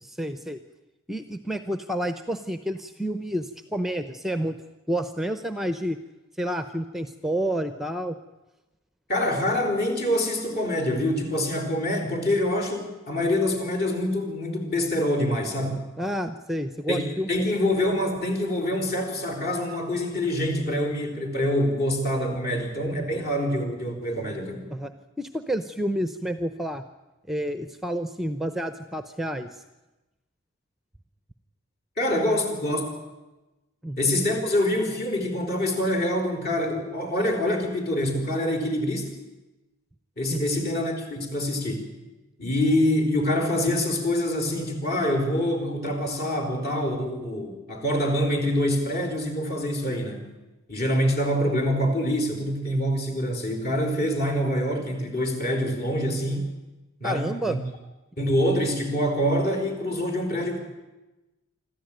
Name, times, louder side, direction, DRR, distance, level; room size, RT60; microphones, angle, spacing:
voice 1, 0.0-0.6 1.1-4.6 4.9-6.0 6.4-8.2 16.0-17.3 22.5-22.7 23.0-23.3 24.7-24.9 25.2-26.8 27.3-29.6 33.8-34.0 40.3-40.6 57.0-57.6, right 1 dB, ahead, 9 dB, 0.6 m, -29 dB
voice 2, 9.1-15.8 16.9-24.6 32.0-32.9 34.0-39.1 40.2-41.9 42.4-50.3 50.7-56.5 57.0-57.6 58.2-60.6, left 1 dB, 45° left, 3 dB, 4.5 m, -25 dB
25.5 x 13.5 x 9.1 m, 1.1 s
head